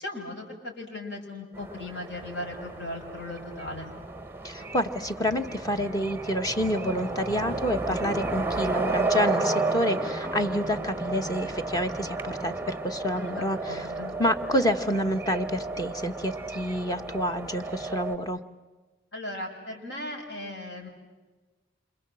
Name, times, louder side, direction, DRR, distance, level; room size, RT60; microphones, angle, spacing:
voice 1, 0.0-3.9 13.1-14.1 19.1-20.9, left 1 dB, 60° left, 1 dB, 6.2 m, -37 dB
sound 1, 1.6-18.2, right 3 dB, 10° right, 0.9 m, -33 dB
voice 2, 4.4-13.9 14.2-18.4, equal, 20° left, 7 dB, 1.3 m, -28 dB
28.0 x 26.5 x 7.8 m, 1.2 s
head